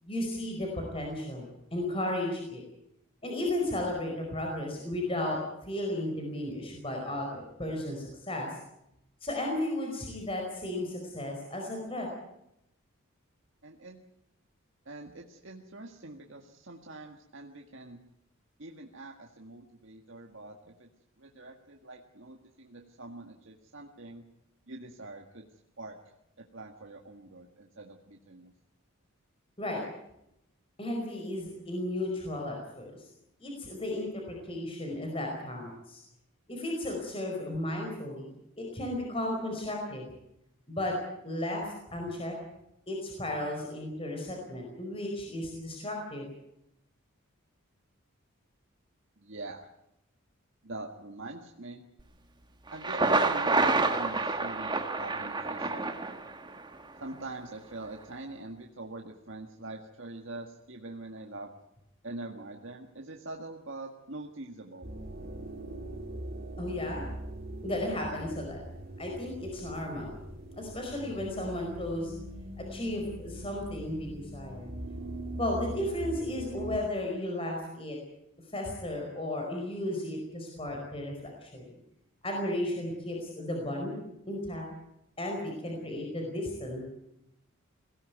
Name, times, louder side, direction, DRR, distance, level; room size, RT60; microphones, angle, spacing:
voice 1, 0.0-2.6 3.2-8.5 9.2-12.1 29.6-29.8 30.8-33.1 33.4-36.0 36.5-40.0 40.7-40.9 41.2-42.3 42.9-46.3 66.6-67.1 67.6-68.6 69.0-70.1 70.5-72.1 72.6-74.7 75.4-78.0 78.5-81.7 82.2-84.0 84.3-84.6 85.2-86.8, left 1 dB, 25° left, 1 dB, 4.9 m, -34 dB
voice 2, 13.6-14.0 14.8-18.0 18.6-20.9 21.2-24.2 24.7-25.5 25.8-26.0 26.4-28.5 49.2-49.7 50.6-51.8 52.7-55.8 57.0-61.5 62.0-64.9, right 2 dB, 60° right, 2 dB, 1.8 m, -44 dB
Thunder, 52.7-56.7, right 3 dB, 20° right, 1.6 m, -28 dB
sound 1, 64.8-76.8, right 1 dB, 45° right, 3.1 m, -41 dB
22.0 x 17.5 x 9.4 m, 0.84 s
head